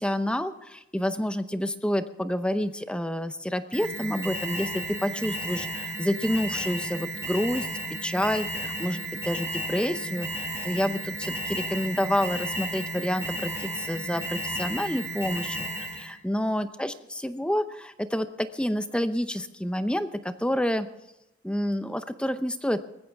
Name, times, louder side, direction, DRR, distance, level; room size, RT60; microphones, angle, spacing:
voice 1, 0.0-7.7 8.0-20.9 21.4-22.8, equal, 5° left, 10 dB, 0.7 m, -29 dB
Alarm, 3.7-16.1, right 1 dB, 15° right, 4.9 m, -33 dB
20.0 x 15.0 x 3.5 m, 0.92 s
head